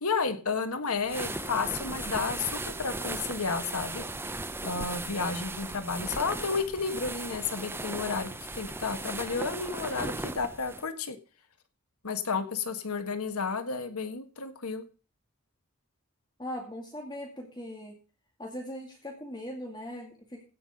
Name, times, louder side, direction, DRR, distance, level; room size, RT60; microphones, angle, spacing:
voice 1, 0.0-4.0 4.6-11.2 12.0-14.8, left 4 dB, 90° left, 9 dB, 1.5 m, -32 dB
sound 1, 1.0-10.8, right 2 dB, 10° right, 0.7 m, -37 dB
voice 2, 16.4-18.0 18.4-20.4, left 1 dB, 20° left, 0 dB, 2.3 m, -40 dB
16.0 x 5.7 x 6.5 m, 0.37 s
head